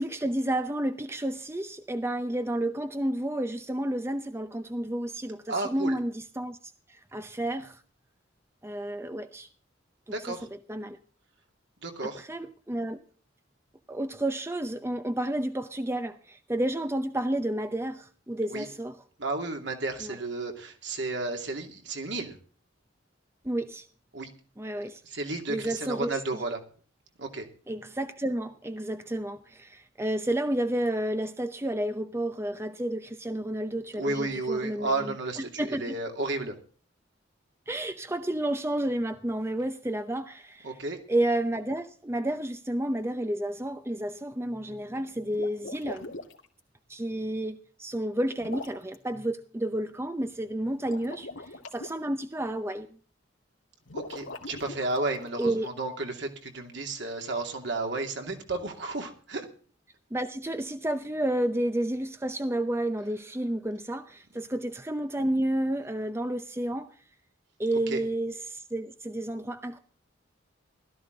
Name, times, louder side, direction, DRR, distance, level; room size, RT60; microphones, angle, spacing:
voice 1, 0.0-6.6 6.9-7.8 8.6-9.5 10.1-10.4 10.7-11.0 12.1-13.0 13.9-19.0 20.0-20.2 23.4-23.9 24.6-25.0 25.5-26.2 27.7-35.1 35.6-36.0 37.7-40.7 41.1-46.1 46.9-52.9 55.4-55.7 60.1-66.9 67.6-69.8, right 1 dB, 15° right, 0.7 m, -31 dB
voice 2, 5.5-6.0 10.1-10.5 11.8-12.2 18.5-18.7 19.2-22.4 24.1-24.3 25.0-26.6 27.2-27.5 34.0-36.6 40.6-41.0 53.9-59.5 67.9-68.0, right 2 dB, 65° right, 2.6 m, -32 dB
sound 1, 45.2-46.4 48.4-48.9 50.8-51.9 53.8-55.5, left 2 dB, 85° left, 2.3 m, -41 dB
16.5 x 13.0 x 3.9 m
head